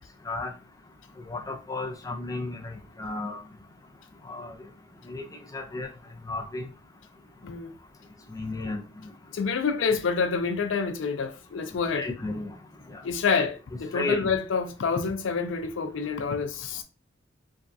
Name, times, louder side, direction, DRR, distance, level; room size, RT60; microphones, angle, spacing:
voice 1, 1.3-3.4 4.2-4.5 5.1-5.2 5.5-5.9 6.3-6.7 8.3-8.8 11.9-12.5 12.9-13.0 13.9-14.2, left 2 dB, 20° left, 0.5 m, -33 dB
voice 2, 7.4-7.8 9.3-12.1 13.0-16.8, left 5 dB, 85° left, 0.4 m, -27 dB
4.7 x 2.3 x 2.6 m
head